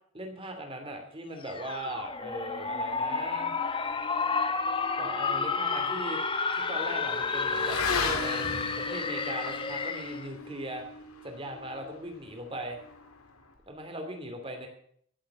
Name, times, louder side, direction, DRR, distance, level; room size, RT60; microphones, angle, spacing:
voice 1, 0.1-3.6 5.0-6.2 6.5-10.8 11.2-12.8 13.7-14.7, right 1 dB, 25° right, 4 dB, 2.7 m, -39 dB
sound 1, 1.4-10.3, left 4 dB, 20° left, 0.9 m, -31 dB
Motorcycle / Accelerating revving vroom, 4.9-13.7, left 4 dB, 75° left, 1.9 m, -38 dB
sound 2, 7.8-9.0, right 1 dB, 75° right, 5.3 m, -49 dB
16.5 x 7.8 x 7.6 m, 0.63 s
head